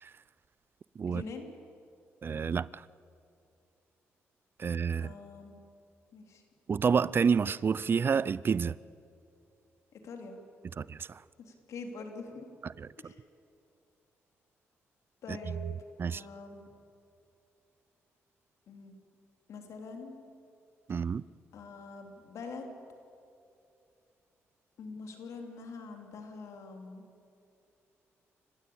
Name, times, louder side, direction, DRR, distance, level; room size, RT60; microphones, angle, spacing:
voice 1, 1.1-1.5 5.0-5.6 6.1-6.4 9.9-10.4 11.4-12.5 13.0-13.1 15.2-15.7 16.0-16.6 18.7-19.0 19.5-20.2 21.5-22.7 24.8-27.0, left 4 dB, 75° left, 3.3 m, -44 dB
voice 2, 2.2-2.9 4.6-5.1 6.7-8.8 10.8-11.2 12.8-13.1 15.3-15.6 16.0-16.2 20.9-21.2, right 6 dB, 45° right, 0.5 m, -29 dB
28.0 x 16.0 x 8.7 m
cardioid pair, 70°, 5 cm